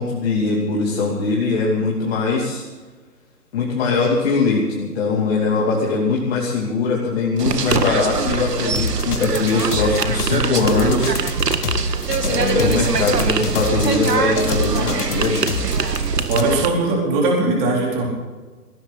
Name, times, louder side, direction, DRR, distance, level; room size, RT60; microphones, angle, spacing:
voice 1, 0.0-2.6 3.5-11.2 12.2-15.4, left 4 dB, 40° left, -3 dB, 3.0 m, -21 dB
sound 1, 7.4-16.7, right 5 dB, 75° right, 2.0 m, -23 dB
sound 2, 8.8-16.4, left 4 dB, 65° left, 2.1 m, -27 dB
voice 2, 16.3-18.1, right 2 dB, 20° right, -1 dB, 4.0 m, -19 dB
20.5 x 17.0 x 4.2 m, 1.3 s
hypercardioid pair, 150°, 48 cm